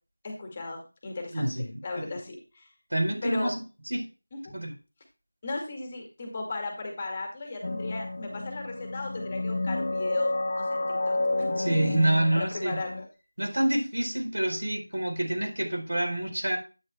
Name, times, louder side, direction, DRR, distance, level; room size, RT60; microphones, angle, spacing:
voice 1, 0.2-1.5 1.8-2.7 3.2-3.5 4.3-4.5 5.4-11.5 12.3-13.0, left 2 dB, 20° left, 2 dB, 2.2 m, -36 dB
voice 2, 1.3-2.2 2.9-3.6 3.9-4.1 4.5-4.7 11.6-12.8 13.4-16.6, right 1 dB, 75° right, 2 dB, 4.4 m, -27 dB
sound 1, 7.6-13.1, left 2 dB, 45° left, 1.1 m, -30 dB
10.5 x 9.9 x 2.3 m, 0.32 s
figure-of-eight pair, 175°, 0 cm